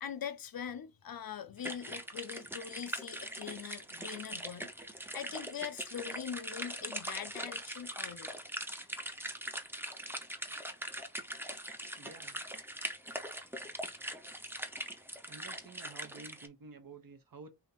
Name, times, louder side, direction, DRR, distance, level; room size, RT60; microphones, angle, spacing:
voice 1, 0.0-4.7 5.1-8.4, left 8 dB, 60° left, 0.5 m, -42 dB
sound 1, 1.6-16.5, right 1 dB, 5° right, 0.6 m, -42 dB
voice 2, 12.0-12.4 15.3-17.5, right 4 dB, 60° right, 0.8 m, -51 dB
3.5 x 2.8 x 3.8 m
wide cardioid pair, 85°, 39 cm